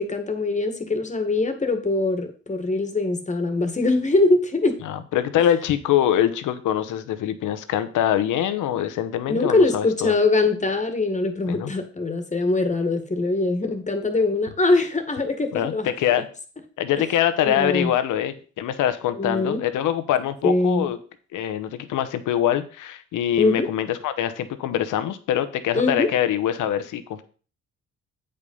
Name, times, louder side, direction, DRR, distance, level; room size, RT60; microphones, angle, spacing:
voice 1, 0.0-4.8 9.3-15.9 17.0-17.1 17.5-17.9 19.2-19.6 20.4-20.9 23.4-23.7 25.7-26.1, left 2 dB, 25° left, 7 dB, 1.7 m, -22 dB
voice 2, 4.8-10.1 11.5-11.7 15.5-16.3 16.8-21.0 21.3-27.2, left 11 dB, 85° left, 11 dB, 1.0 m, -24 dB
8.4 x 5.3 x 5.4 m, 0.38 s
cardioid pair, 90°, 30 cm